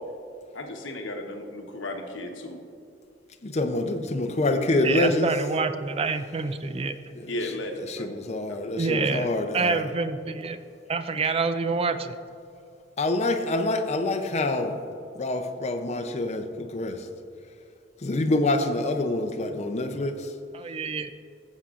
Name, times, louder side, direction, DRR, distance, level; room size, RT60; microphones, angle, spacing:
voice 1, 0.5-2.6 7.3-8.1 8.5-8.6, left 1 dB, 90° left, 2 dB, 1.1 m, -34 dB
voice 2, 3.4-5.3 7.1-7.3 7.9-9.8 13.0-14.8 15.1-17.1 18.0-20.3, left 2 dB, 35° left, 5 dB, 0.6 m, -26 dB
voice 3, 4.8-6.9 8.8-9.3 9.5-10.6 10.9-12.2 20.5-21.1, right 4 dB, 30° right, 10 dB, 0.3 m, -27 dB
15.5 x 7.3 x 2.5 m, 2.5 s
head